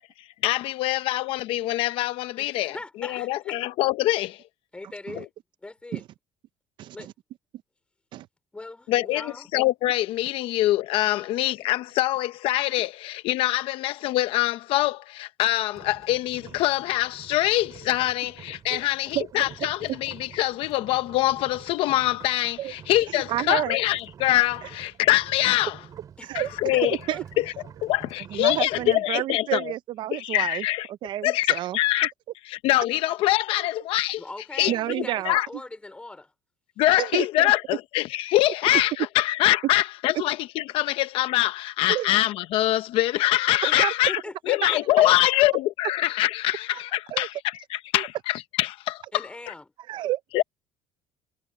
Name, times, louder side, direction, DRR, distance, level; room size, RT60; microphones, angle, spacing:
voice 1, 0.2-2.8 3.0-4.4 8.9-25.8 26.3-27.0 27.4-27.5 27.8-29.7 30.1-30.9 31.2-32.1 32.4-34.2 34.6-35.5 36.8-44.2 44.5-49.5 50.3-50.4, left 16 dB, 70° left, 0.8 m, -24 dB
voice 2, 2.4-3.6 4.7-5.3 5.6-6.0 6.9-7.1 8.5-9.5 18.2-18.3 18.8-19.1 26.2-26.4 26.7-26.8 27.1-27.3 34.2-36.3 43.6-43.8 44.1-45.2 49.1-49.6, left 2 dB, 10° left, 4.9 m, -40 dB
sound 1, 15.7-29.0, right 8 dB, 40° right, 3.8 m, -47 dB
voice 3, 23.3-23.8 26.3-26.5 27.1-27.2 28.3-30.6 31.0-31.8 34.7-35.4 36.9-37.5 41.9-42.1 43.7-43.9 47.1-47.3 47.9-48.1 49.9-50.4, right 14 dB, 55° right, 0.5 m, -29 dB
cardioid pair, 135°, 10 cm